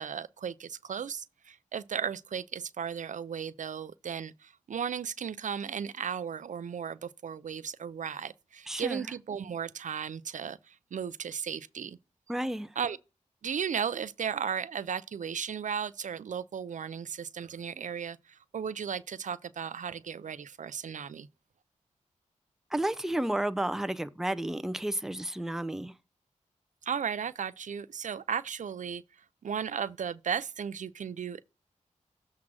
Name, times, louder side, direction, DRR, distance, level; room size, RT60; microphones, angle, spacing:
voice 1, 0.0-12.0 12.8-13.0 13.4-21.3 26.8-29.0 29.4-31.4, right 7 dB, 70° right, 0.5 m, -35 dB
voice 2, 8.7-9.1 12.3-12.7 22.7-25.9, right 1 dB, 5° right, 0.5 m, -32 dB
7.4 x 3.7 x 6.2 m
cardioid pair, 70°, 13 cm